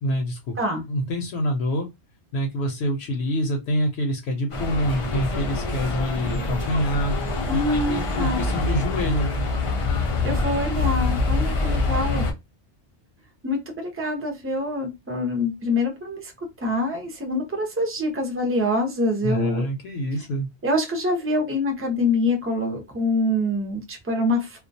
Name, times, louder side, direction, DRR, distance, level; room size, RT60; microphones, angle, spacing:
voice 1, 0.0-0.6 0.9-1.9 2.3-7.1 7.9-9.3 19.2-20.5, equal, 75° left, 3 dB, 0.8 m, -26 dB
sound 1, 4.5-12.3, left 3 dB, 45° left, 0.4 m, -25 dB
voice 2, 7.5-8.4 10.2-12.3 13.4-16.3 16.6-19.7 20.6-24.6, left 1 dB, 15° right, 2 dB, 0.5 m, -25 dB
2.2 x 2.2 x 2.5 m, 0.22 s
omnidirectional pair, 1.2 m